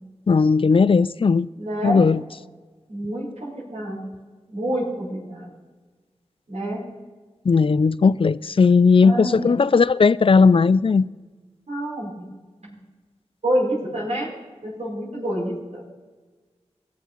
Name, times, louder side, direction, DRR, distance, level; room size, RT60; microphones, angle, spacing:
voice 1, 0.3-1.5 1.8-2.2 7.5-11.1, left 4 dB, 50° left, 0.4 m, -17 dB
voice 2, 1.6-2.0 2.9-4.1 4.5-5.5 6.5-6.9 9.0-9.6 11.7-12.1 12.6-12.7 13.4-14.3 14.6-15.8, right 1 dB, 75° right, 5.4 m, -27 dB
21.0 x 7.6 x 5.3 m
wide cardioid pair, 50°, 12 cm